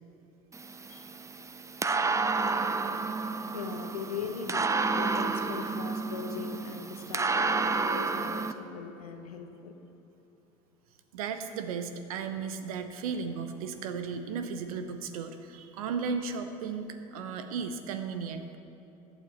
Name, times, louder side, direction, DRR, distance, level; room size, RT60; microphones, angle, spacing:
sound 1, 0.5-8.5, right 4 dB, 15° right, 0.6 m, -30 dB
voice 1, 3.5-9.7, left 6 dB, 90° left, 6 dB, 1.0 m, -40 dB
voice 2, 11.1-18.6, right 5 dB, 80° right, 8 dB, 0.9 m, -35 dB
15.0 x 9.1 x 4.3 m, 3.0 s
hypercardioid pair, 70°, 18 cm